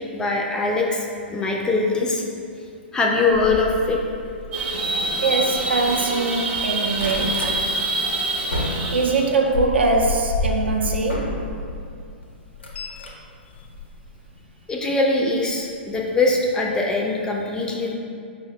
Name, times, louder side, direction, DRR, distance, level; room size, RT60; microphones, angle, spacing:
voice 1, 0.1-2.2 2.9-4.0 14.7-18.0, left 3 dB, 10° left, 0 dB, 0.3 m, -22 dB
sound 1, 3.3-6.1 6.4-7.6 8.0-11.8 12.2-14.4 15.5-15.7 16.1-16.2 16.4-16.5, left 2 dB, 75° left, 0.5 m, -30 dB
sound 2, 4.5-9.3, right 2 dB, 30° right, 0.7 m, -26 dB
voice 2, 5.2-7.5 8.9-11.4, right 3 dB, 70° right, 1 dB, 0.4 m, -22 dB
4.8 x 2.1 x 2.8 m, 2.4 s
figure-of-eight pair, 110°, 6 cm